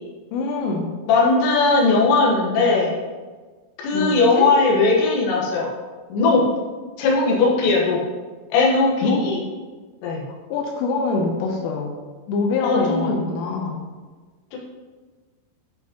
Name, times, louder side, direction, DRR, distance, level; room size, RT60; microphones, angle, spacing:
voice 1, 0.3-0.9 3.9-4.5 9.0-9.2 10.5-12.0 12.3-13.8, left 3 dB, 85° left, 0 dB, 3.3 m, -24 dB
voice 2, 1.1-2.9 3.8-5.7 6.1-6.4 7.0-8.0 8.5-9.4 10.0-10.2 12.6-13.3 14.5-14.6, left 3 dB, 70° left, -3 dB, 3.2 m, -18 dB
10.5 x 4.8 x 2.9 m, 1.4 s
omnidirectional pair, 5.7 m